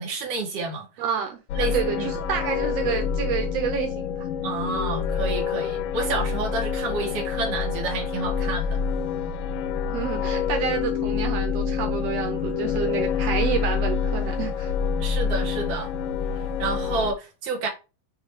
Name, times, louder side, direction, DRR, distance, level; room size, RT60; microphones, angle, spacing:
voice 1, 0.0-0.9 1.5-2.1 4.4-8.8 15.0-15.9 16.6-17.7, right 3 dB, 50° right, 2.6 m, -29 dB
voice 2, 1.0-4.3 9.9-14.7, right 8 dB, 90° right, 1.4 m, -29 dB
sound 1, 1.5-17.1, left 6 dB, 75° left, 2.2 m, -27 dB
7.0 x 3.3 x 4.8 m
omnidirectional pair, 4.2 m